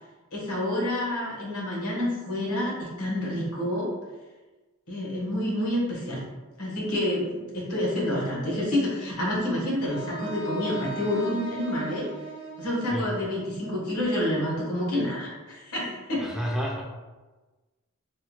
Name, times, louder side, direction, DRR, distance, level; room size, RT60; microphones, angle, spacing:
voice 1, 0.3-3.9 4.9-6.2 6.6-12.1 12.6-16.3, left 1 dB, 85° left, -4 dB, 1.0 m, -28 dB
Wind instrument woodwind instrument, 9.9-13.9, right 2 dB, 70° right, 0.6 m, -38 dB
voice 2, 16.2-16.8, equal, ahead, -2 dB, 0.3 m, -30 dB
3.4 x 2.1 x 2.9 m, 1.2 s
head